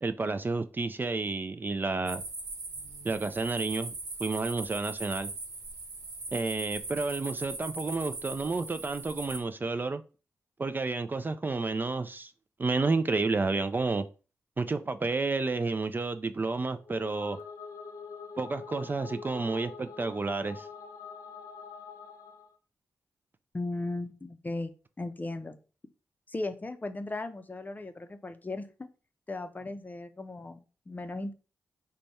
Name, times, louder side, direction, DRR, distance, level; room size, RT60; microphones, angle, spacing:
voice 1, 0.0-2.2 3.0-5.3 6.3-10.0 10.6-12.3 12.6-14.0 14.6-17.4 18.4-20.7, right 3 dB, 30° right, 10 dB, 0.3 m, -30 dB
sound 1, 2.1-9.4, right 3 dB, 90° right, 0.8 m, -40 dB
sound 2, 16.8-22.5, left 5 dB, 80° left, 0.6 m, -45 dB
voice 2, 23.5-24.7 25.0-25.6 26.3-28.9 29.3-31.3, left 2 dB, 30° left, 8 dB, 0.5 m, -37 dB
3.4 x 2.2 x 4.0 m, 0.34 s
cardioid pair, 55°, 6 cm